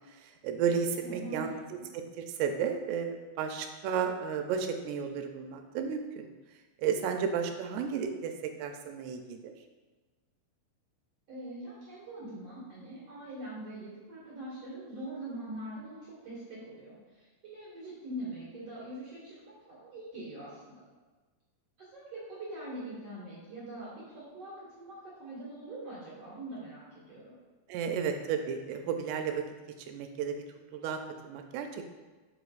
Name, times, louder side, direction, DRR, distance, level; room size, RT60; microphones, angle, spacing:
voice 1, 0.2-1.6 1.9-6.3 6.8-8.3 8.6-9.5 27.7-29.4 29.9-30.4 30.7-31.0 31.2-31.9, right 7 dB, 80° right, 5 dB, 2.6 m, -33 dB
voice 2, 1.0-1.9 11.3-20.8 21.8-27.3, right 1 dB, 50° right, -8 dB, 2.1 m, -43 dB
8.0 x 7.6 x 2.4 m, 1.3 s
omnidirectional pair, 5.0 m